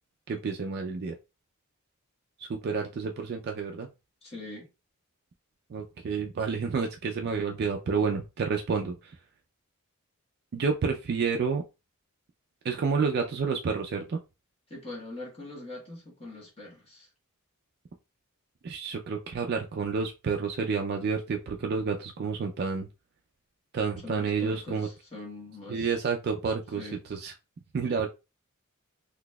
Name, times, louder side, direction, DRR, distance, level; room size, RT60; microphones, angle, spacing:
voice 1, 0.3-1.1 2.4-3.9 5.7-9.1 10.5-11.6 12.6-14.2 18.6-22.9 23.7-24.9 25.7-27.3 27.7-28.1, right 5 dB, 50° right, 0.3 m, -29 dB
voice 2, 4.2-4.7 14.7-17.1 24.0-25.9 26.8-27.0, left 2 dB, 30° left, 1.2 m, -42 dB
4.0 x 2.7 x 2.2 m
head